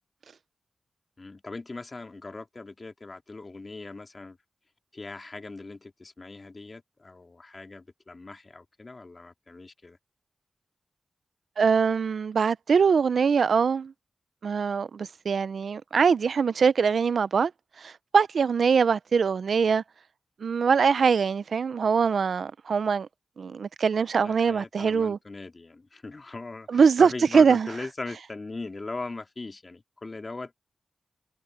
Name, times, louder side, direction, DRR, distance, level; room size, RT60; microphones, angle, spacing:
voice 1, 1.2-4.4 4.9-10.0 24.2-30.7, left 3 dB, 45° left, 2.3 m, -40 dB
voice 2, 11.6-13.9 14.4-17.5 17.8-19.8 20.4-23.1 23.4-25.2 26.7-27.7, right 6 dB, 80° right, 0.6 m, -23 dB
cardioid pair, 55°, 0 cm